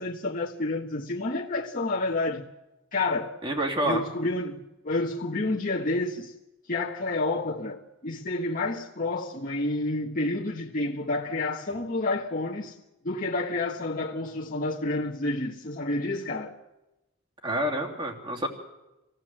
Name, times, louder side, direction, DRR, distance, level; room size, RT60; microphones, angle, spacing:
voice 1, 0.0-2.4 2.9-3.3 3.8-6.3 6.7-12.8 13.0-16.5, left 2 dB, 45° left, 1.5 m, -29 dB
voice 2, 3.4-4.0 17.4-18.5, right 1 dB, 25° right, 3.0 m, -28 dB
26.5 x 16.5 x 7.8 m
head